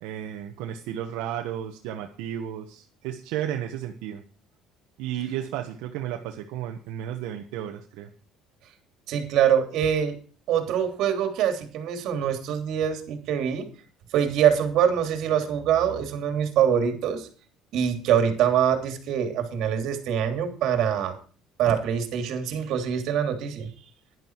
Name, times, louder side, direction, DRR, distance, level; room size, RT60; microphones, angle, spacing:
voice 1, 0.0-4.2 5.0-8.1, right 10 dB, 85° right, 3 dB, 1.2 m, -33 dB
voice 2, 9.1-10.2 10.5-13.7 14.1-17.3 17.7-21.2 21.6-23.7, right 8 dB, 65° right, 6 dB, 2.9 m, -24 dB
11.5 x 11.0 x 4.7 m, 0.40 s
cardioid pair, 135°, 0 cm